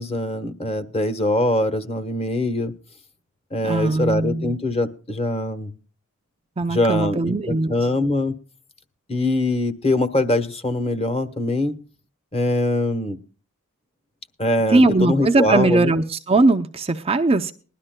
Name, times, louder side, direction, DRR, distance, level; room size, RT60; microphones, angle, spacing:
voice 1, 0.0-2.7 3.5-5.7 6.7-8.3 9.1-11.7 12.3-13.2 14.4-15.9, left 1 dB, 25° left, 1.1 m, -23 dB
voice 2, 3.6-4.5 6.6-7.7 14.7-17.5, right 2 dB, 25° right, 0.6 m, -19 dB
21.0 x 12.0 x 2.2 m
head